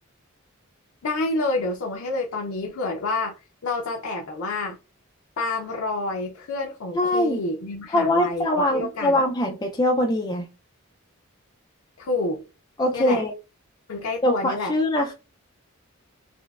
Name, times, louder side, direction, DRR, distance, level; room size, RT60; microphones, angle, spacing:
voice 1, 1.0-3.3 3.6-4.8 5.4-9.2 12.0-12.4 12.9-13.2 13.9-14.7, left 2 dB, 75° left, 0.5 m, -28 dB
voice 2, 6.9-7.4 7.9-10.5 12.8-13.3 14.2-15.1, left 1 dB, 20° left, 0.3 m, -22 dB
4.3 x 2.0 x 2.3 m
head